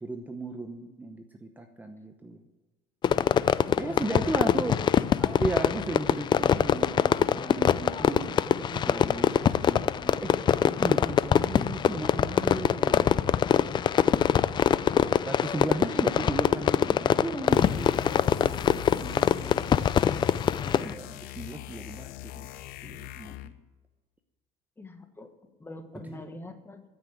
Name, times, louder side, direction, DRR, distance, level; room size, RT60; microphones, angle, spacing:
voice 1, 0.0-2.4 3.8-4.8 5.2-10.3 10.8-13.8 15.2-19.6 20.6-22.5 22.8-23.5 26.1-26.2, right 2 dB, 10° right, 5 dB, 0.8 m, -36 dB
Fireworks, 3.0-20.9, left 8 dB, 30° left, 0.4 m, -24 dB
voice 2, 3.8-5.1 15.9-16.0 24.8-26.8, left 2 dB, 15° left, 7 dB, 1.3 m, -44 dB
sound 1, 17.5-23.6, left 14 dB, 75° left, 0.7 m, -41 dB
13.5 x 6.1 x 8.3 m, 1.2 s
cardioid pair, 125°, 15 cm